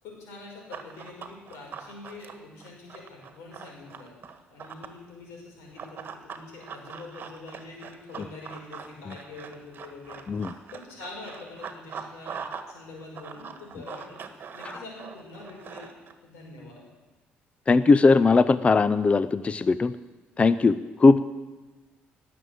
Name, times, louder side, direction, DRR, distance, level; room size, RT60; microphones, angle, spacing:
voice 1, 0.0-4.1 4.5-15.9 16.2-16.8, left 3 dB, 85° left, -1 dB, 5.6 m, -45 dB
Run, 0.7-5.0 5.8-12.7 13.0-16.1, right 6 dB, 50° right, 1.6 m, -42 dB
voice 2, 17.7-19.9 20.4-21.2, left 4 dB, 30° left, 15 dB, 0.5 m, -19 dB
19.5 x 7.7 x 7.8 m, 1.2 s
supercardioid pair, 80°, 4 cm